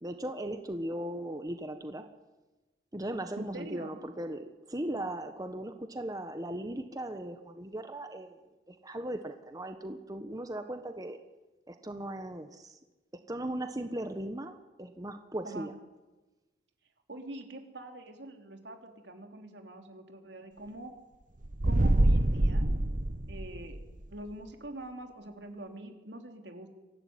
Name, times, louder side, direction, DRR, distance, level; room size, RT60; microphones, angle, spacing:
voice 1, 0.0-2.0 2.9-8.4 8.7-11.2 11.7-12.8 13.3-15.7, right 1 dB, 20° right, 7 dB, 1.4 m, -38 dB
voice 2, 3.4-3.9 15.4-15.7 17.1-20.9 21.6-22.7 23.3-23.8 24.1-26.7, right 1 dB, 80° right, 5 dB, 3.2 m, -44 dB
sound 1, 21.4-23.9, right 1 dB, 50° right, 1.0 m, -25 dB
24.0 x 15.5 x 9.6 m, 1.1 s
head